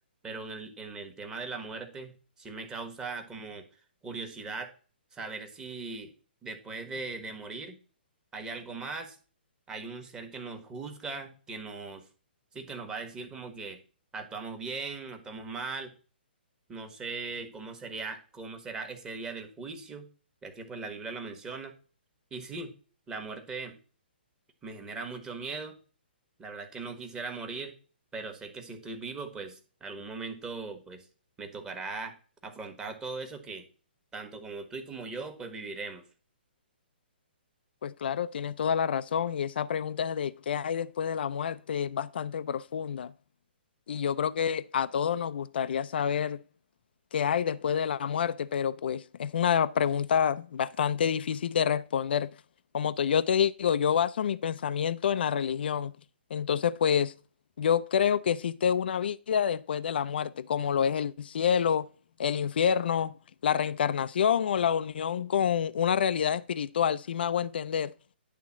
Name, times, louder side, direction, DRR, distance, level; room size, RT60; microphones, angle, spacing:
voice 1, 0.2-3.6 4.0-4.7 5.1-6.1 6.4-7.8 8.3-9.2 9.7-12.1 12.5-13.8 14.1-15.9 16.7-20.1 20.4-21.7 22.3-22.7 23.1-23.8 24.6-25.8 26.4-27.7 28.1-31.1 31.4-32.2 32.4-33.6 34.1-36.0, right 4 dB, 10° right, 1.4 m, -39 dB
voice 2, 37.8-43.1 43.9-46.4 47.1-52.3 52.7-55.9 56.3-57.1 57.6-61.9 62.2-63.1 63.4-67.9, left 8 dB, 65° left, 0.5 m, -28 dB
10.5 x 3.6 x 7.3 m
hypercardioid pair, 145°, 6 cm